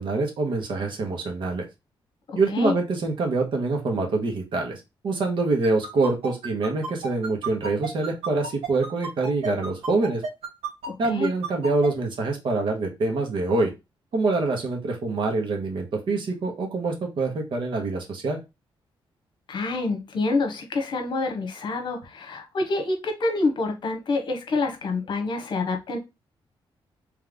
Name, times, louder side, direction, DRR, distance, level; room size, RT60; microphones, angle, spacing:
voice 1, 0.0-1.7 2.3-10.2 11.0-13.7 14.1-18.4, right 3 dB, 60° right, 1.3 m, -25 dB
voice 2, 2.3-2.8 10.9-11.3 19.5-26.0, left 3 dB, 55° left, 1.1 m, -27 dB
sound 1, 5.6-11.9, right 5 dB, 85° right, 2.1 m, -31 dB
3.4 x 3.4 x 3.7 m
cardioid pair, 135°, 10 cm